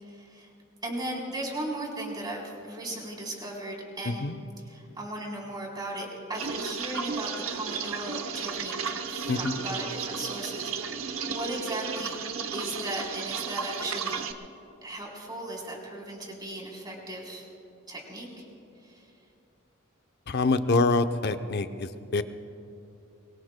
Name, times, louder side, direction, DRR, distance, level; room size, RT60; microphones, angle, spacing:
voice 1, 0.1-0.5 0.8-4.3 4.7-8.8 9.1-12.2 12.5-14.3 14.8-17.4 17.9-18.5 18.8-19.1, right 1 dB, 20° right, -2 dB, 3.6 m, -37 dB
voice 2, 4.0-4.4 9.3-9.6 20.3-22.2, left 3 dB, 50° left, 9 dB, 0.6 m, -26 dB
sound 1, 6.3-14.3, right 5 dB, 70° right, 0.9 m, -34 dB
24.0 x 23.5 x 2.2 m, 2.7 s
head